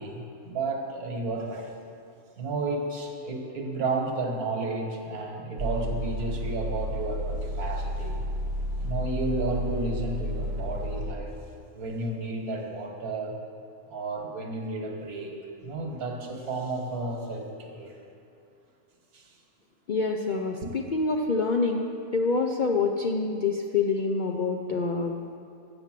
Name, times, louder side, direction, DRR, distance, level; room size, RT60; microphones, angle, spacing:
voice 1, 0.0-1.7 2.4-8.2 8.8-11.4 11.7-13.4 13.9-15.3 15.6-18.0 19.1-19.3 20.6-20.7, right 2 dB, 90° right, 2 dB, 1.7 m, -32 dB
sound 1, 5.6-11.1, equal, 70° right, 1.4 m, -31 dB
voice 2, 19.9-25.2, left 4 dB, 60° left, 1 dB, 0.5 m, -26 dB
9.0 x 6.9 x 7.4 m, 2.6 s
omnidirectional pair, 1.5 m